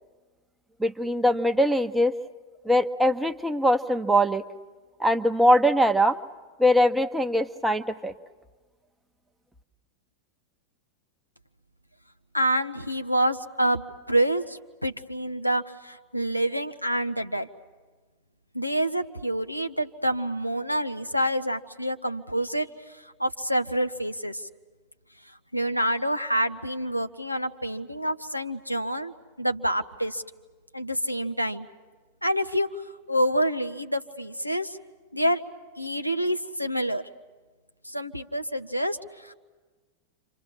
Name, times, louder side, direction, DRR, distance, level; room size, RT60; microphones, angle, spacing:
voice 1, 0.8-2.1 2.6-4.4 5.0-6.2 6.6-8.1, equal, 5° right, 7 dB, 1.0 m, -22 dB
voice 2, 12.3-17.5 18.5-22.7 22.9-24.5 25.5-30.2 30.7-31.7 32.2-32.8 33.1-34.8 35.1-35.4 35.8-37.0 37.8-39.3, equal, 90° left, 7 dB, 0.9 m, -27 dB
29.5 x 26.0 x 7.3 m, 1.4 s
figure-of-eight pair, 90°, 0 cm